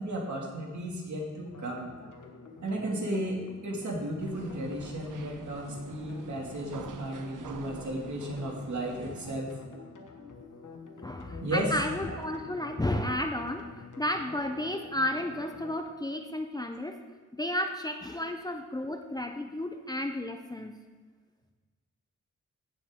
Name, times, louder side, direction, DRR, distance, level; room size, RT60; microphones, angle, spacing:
voice 1, 0.0-1.9 2.6-9.5 11.4-11.7 12.1-12.2, right 1 dB, 70° right, -1 dB, 2.2 m, -34 dB
sound 1, 1.5-15.8, left 4 dB, 80° left, 1.3 m, -49 dB
sound 2, 4.2-9.4, right 6 dB, 85° right, 0.7 m, -46 dB
voice 2, 11.0-13.7 14.0-17.0 17.4-20.8, left 1 dB, 15° left, 5 dB, 0.5 m, -32 dB
16.0 x 7.1 x 3.6 m, 1.5 s
wide cardioid pair, 150°, 30 cm